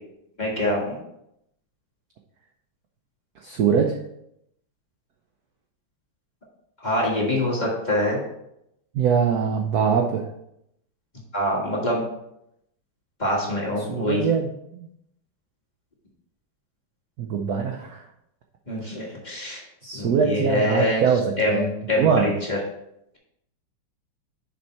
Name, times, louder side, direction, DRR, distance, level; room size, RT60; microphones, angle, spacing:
voice 1, 0.4-1.0 6.8-8.2 11.3-12.0 13.2-14.2 18.7-19.6 19.9-21.0 21.4-22.6, left 1 dB, 20° left, -4 dB, 1.6 m, -25 dB
voice 2, 3.4-4.0 8.9-10.3 13.8-14.9 17.2-18.0 18.8-18.9 19.8-21.6 21.9-22.3, right 6 dB, 70° right, 2 dB, 0.9 m, -23 dB
6.7 x 5.3 x 4.4 m, 0.80 s
omnidirectional pair, 2.3 m